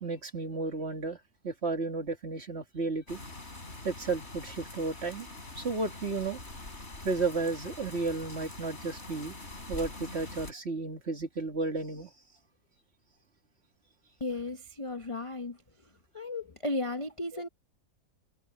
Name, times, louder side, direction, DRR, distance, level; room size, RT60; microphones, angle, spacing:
voice 1, 0.0-1.2 1.4-3.2 3.8-5.3 5.6-6.4 7.0-9.4 9.7-12.1 17.3-17.4, right 3 dB, 40° right, 2.3 m, -33 dB
sound 1, 3.1-10.5, left 2 dB, 40° left, 4.6 m, -44 dB
voice 2, 14.2-15.6 16.1-17.5, left 2 dB, 25° left, 0.8 m, -34 dB
omnidirectional pair, 1.7 m